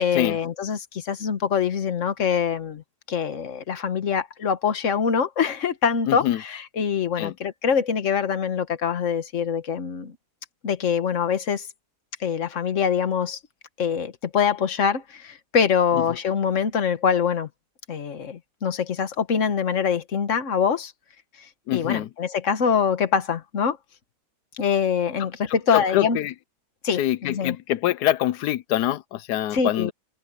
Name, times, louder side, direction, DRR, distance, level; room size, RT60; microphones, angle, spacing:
voice 1, 0.0-10.1 10.6-11.7 12.2-13.4 13.8-17.5 17.9-20.9 21.7-23.8 24.6-26.2 26.8-27.6 29.5-29.9, left 7 dB, 50° left, 1.6 m, -24 dB
voice 2, 6.1-6.4 7.2-7.3 21.7-22.1 25.7-26.3 27.0-29.9, left 13 dB, 85° left, 1.2 m, -25 dB
omnidirectional pair, 1.7 m